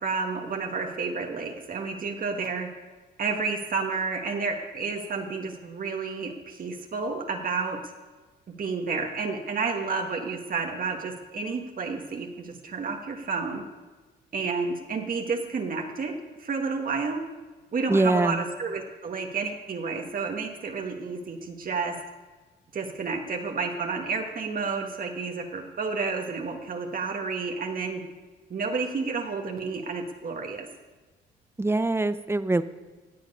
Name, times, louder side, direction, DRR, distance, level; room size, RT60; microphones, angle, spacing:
voice 1, 0.0-2.7 3.2-7.8 8.6-13.6 14.3-17.2 17.7-22.0 22.7-28.0 28.5-30.7, right 4 dB, 45° right, 3 dB, 1.4 m, -30 dB
voice 2, 17.9-18.4 31.6-32.6, right 2 dB, 10° right, 13 dB, 0.6 m, -23 dB
16.5 x 7.8 x 5.4 m, 1.3 s
cardioid pair, 90°, 20 cm